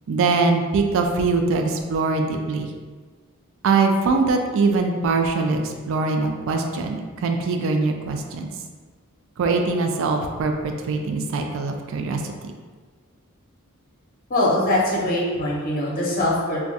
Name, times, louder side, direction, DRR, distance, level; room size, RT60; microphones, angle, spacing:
voice 1, 0.1-2.7 3.6-8.5 9.4-12.5, right 4 dB, 65° right, 4 dB, 0.3 m, -22 dB
voice 2, 14.3-16.6, left 1 dB, 40° left, -4 dB, 0.8 m, -22 dB
2.3 x 2.3 x 3.9 m, 1.5 s
head